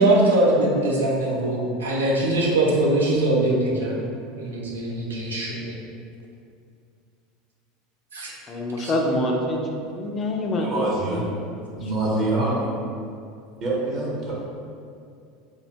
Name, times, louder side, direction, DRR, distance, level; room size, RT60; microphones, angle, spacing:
voice 1, 0.0-3.9 4.4-5.8 8.1-8.3 8.8-8.9, right 1 dB, 90° right, -3 dB, 0.4 m, -22 dB
voice 2, 8.5-12.2 12.5-12.6, left 1 dB, 35° left, 1 dB, 0.3 m, -27 dB
voice 3, 10.6-11.2 11.8-12.7 13.6-14.3, right 2 dB, 45° right, -4 dB, 0.8 m, -25 dB
2.6 x 2.1 x 2.8 m, 2.4 s
hypercardioid pair, 85°, 0 cm